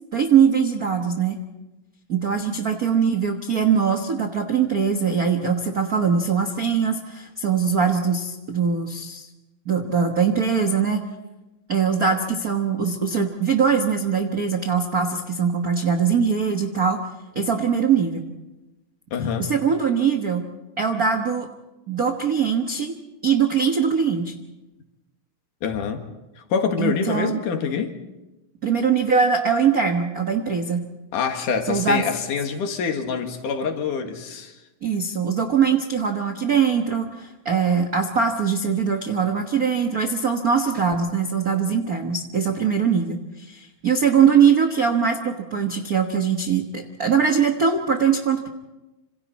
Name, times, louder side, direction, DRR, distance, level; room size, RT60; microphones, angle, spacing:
voice 1, 0.1-1.4 2.1-9.3 9.7-11.0 11.7-17.0 17.3-18.2 19.4-20.5 20.8-21.5 21.9-22.9 23.2-24.3 26.8-27.4 28.6-30.9 31.7-32.0 34.8-48.5, right 6 dB, 60° right, 4 dB, 0.9 m, -21 dB
voice 2, 19.1-19.5 25.6-26.0 26.5-27.9 31.1-34.5, left 6 dB, 80° left, 4 dB, 3.3 m, -25 dB
26.5 x 26.5 x 4.2 m, 1.0 s
omnidirectional pair, 3.7 m